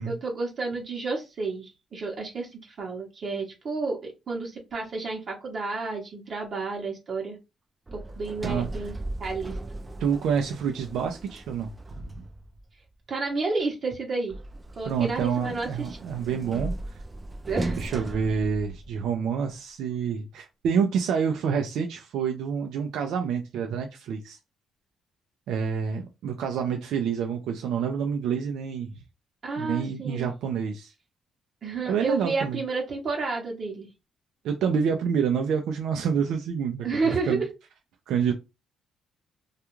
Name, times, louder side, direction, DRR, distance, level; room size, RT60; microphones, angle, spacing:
voice 1, 0.1-7.4 7.9-8.9 9.2-9.5 13.1-14.4 14.8-16.0 17.4-17.8 29.4-30.3 31.6-33.9 36.8-37.5, right 3 dB, 50° right, 0.8 m, -31 dB
Sliding door, 7.9-12.7 14.3-19.2, right 2 dB, 20° right, 0.4 m, -37 dB
voice 2, 8.4-8.9 10.0-12.2 14.8-16.7 17.8-24.4 25.5-28.9 29.6-30.9 31.9-32.6 34.4-36.9 37.3-37.4 38.1-38.3, right 7 dB, 80° right, 0.4 m, -28 dB
2.3 x 2.3 x 3.0 m
cardioid pair, 90°, 0 cm